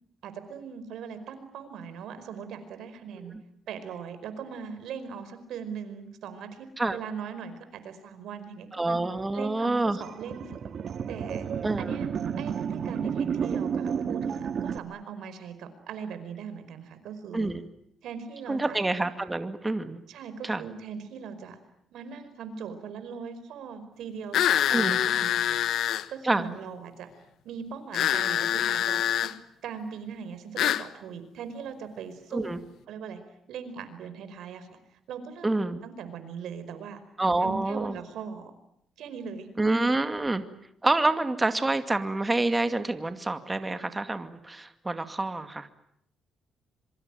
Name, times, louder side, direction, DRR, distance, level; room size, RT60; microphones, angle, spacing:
voice 1, 0.2-3.3 3.7-9.0 9.3-10.6 11.1-11.5 11.8-12.1 12.4-17.5 18.0-18.8 20.1-21.6 21.9-24.4 24.7-27.1 27.4-29.3 29.6-32.5 32.9-33.2 33.5-34.8 35.1-35.5 35.8-37.0 37.4-38.5 39.0-39.5, right 6 dB, 80° right, 10 dB, 5.0 m, -40 dB
voice 2, 8.7-10.0 11.6-12.0 17.3-17.7 18.5-20.0 20.4-20.6 24.7-25.0 26.2-26.5 32.3-32.6 35.4-35.8 37.2-38.0 39.6-40.4 40.8-45.7, right 2 dB, 20° right, 8 dB, 2.2 m, -27 dB
sound 1, 10.0-14.8, right 7 dB, 55° right, 1.8 m, -31 dB
sound 2, 24.3-26.1 27.9-29.3 30.6-30.9, left 11 dB, 80° left, 1.2 m, -25 dB
26.5 x 24.0 x 9.1 m, 0.72 s
cardioid pair, 90°, 0 cm